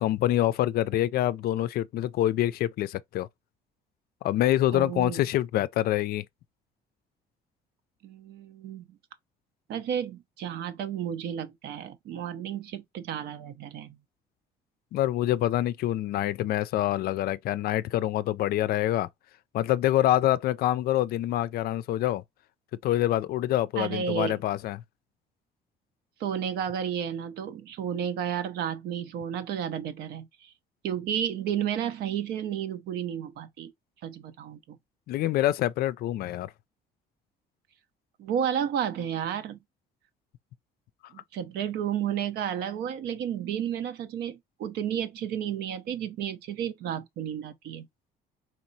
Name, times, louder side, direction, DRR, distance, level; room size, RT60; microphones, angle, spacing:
voice 1, 0.0-3.3 4.2-6.2 14.9-19.1 19.5-22.2 22.8-24.8 35.1-36.5, left 13 dB, 65° left, 0.4 m, -26 dB
voice 2, 4.7-5.2 8.0-8.9 9.7-14.0 23.8-24.4 26.2-30.5 30.8-33.7 34.0-34.8 38.2-39.6 41.1-47.9, right 9 dB, 75° right, 0.8 m, -32 dB
4.3 x 3.0 x 2.7 m
cardioid pair, 110°, 17 cm